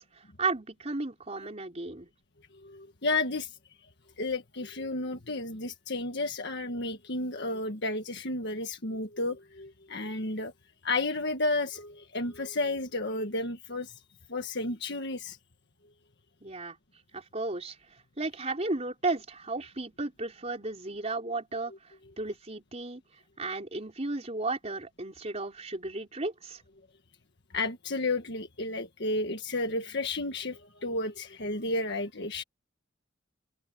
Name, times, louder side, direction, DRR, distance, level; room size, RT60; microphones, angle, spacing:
voice 1, 0.0-2.1 16.4-16.8 17.1-23.0 23.4-26.6, right 3 dB, 35° right, 4.2 m, -34 dB
voice 2, 2.6-3.5 4.2-10.5 10.8-13.9 14.3-15.4 27.5-32.4, left 2 dB, 55° left, 1.6 m, -32 dB
head